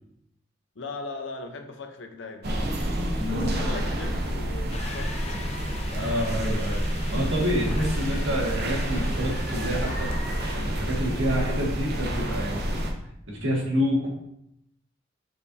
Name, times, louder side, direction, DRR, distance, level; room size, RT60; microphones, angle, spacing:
voice 1, 0.7-2.5 2.9-5.4 5.7-5.8 7.8-7.9, left 3 dB, 70° left, 5 dB, 0.8 m, -39 dB
sound 1, 2.4-12.9, equal, 55° right, 0.9 m, -29 dB
voice 2, 3.2-3.6 5.9-6.8 7.1-10.1 10.5-12.9 13.3-14.1, equal, 75° right, -2 dB, 1.9 m, -28 dB
sound 2, 3.7-11.2, equal, 5° left, 1.6 m, -39 dB
sound 3, 4.7-11.5, left 4 dB, 35° left, 0.5 m, -44 dB
7.1 x 5.0 x 2.7 m, 0.77 s
head